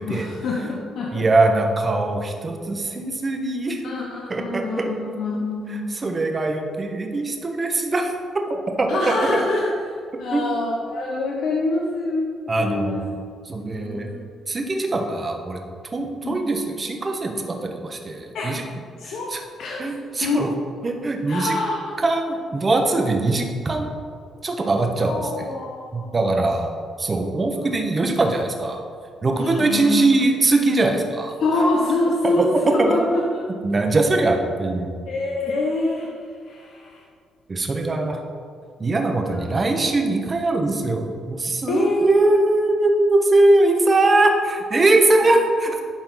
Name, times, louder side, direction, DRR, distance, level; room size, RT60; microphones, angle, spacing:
voice 1, 0.0-1.2 3.8-6.0 8.9-9.7 10.2-12.3 12.6-13.0 13.7-14.2 16.2-16.4 18.3-18.6 19.0-19.3 19.6-19.9 20.2-20.5 21.3-22.0 25.0-26.4 27.5-27.7 29.4-30.1 31.4-33.2 35.1-36.2 36.4-37.0 37.9-38.3 39.3-39.6 41.7-42.5, left 2 dB, 75° left, -2 dB, 0.9 m, -25 dB
voice 2, 1.1-3.8 4.3-4.9 5.7-8.1 8.5-9.1 10.3-10.4 12.5-13.2 13.5-14.1 14.5-15.6 15.9-18.6 19.0-19.4 19.8-20.5 20.8-21.5 22.0-23.9 24.4-25.2 25.9-26.7 27.0-28.8 29.2-31.3 32.2-32.6 33.6-35.0 37.5-38.2 38.8-45.8, right 2 dB, 30° right, 3 dB, 1.0 m, -21 dB
11.5 x 4.3 x 3.9 m, 2.2 s
cardioid pair, 90°, 0 cm